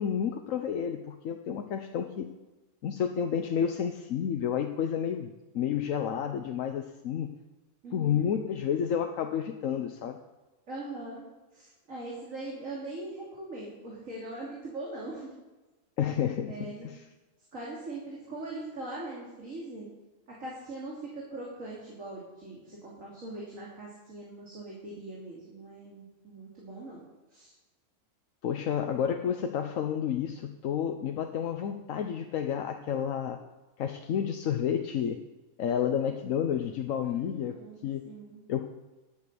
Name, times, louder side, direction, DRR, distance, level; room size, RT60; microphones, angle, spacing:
voice 1, 0.0-2.3 2.8-7.3 7.9-10.2 16.0-17.0 28.4-33.4 33.8-35.2 35.6-37.6 37.8-38.0 38.5-38.7, left 8 dB, 80° left, 5 dB, 1.1 m, -30 dB
voice 2, 7.8-8.4 10.7-11.2 11.5-15.3 16.4-16.9 17.5-19.9 20.4-27.0 27.3-27.5 37.0-38.4, right 2 dB, 80° right, -5 dB, 3.2 m, -41 dB
11.5 x 8.5 x 6.9 m, 1.1 s
omnidirectional pair, 1.3 m